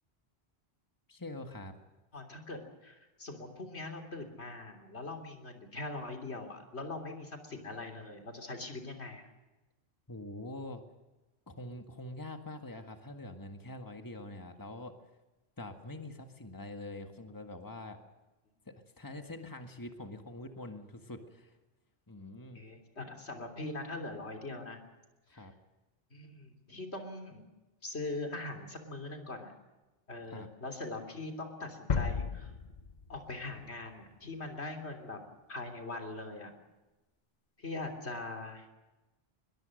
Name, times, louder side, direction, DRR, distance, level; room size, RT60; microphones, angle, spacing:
voice 1, 1.1-1.7 10.1-10.8 11.5-14.9 15.6-18.0 18.7-21.6 22.1-22.6 25.3-25.5 30.3-30.5, left 2 dB, 20° left, 5 dB, 1.8 m, -45 dB
voice 2, 2.1-9.3 22.5-24.8 25.3-25.5 26.1-27.4 27.8-29.5 30.1-32.5 33.1-35.2 35.5-36.5 37.6-38.7, left 2 dB, 85° left, 4 dB, 3.6 m, -42 dB
sound 1, 31.9-33.8, left 5 dB, 45° left, 1.0 m, -34 dB
22.0 x 22.0 x 6.5 m, 1.1 s
omnidirectional pair, 1.1 m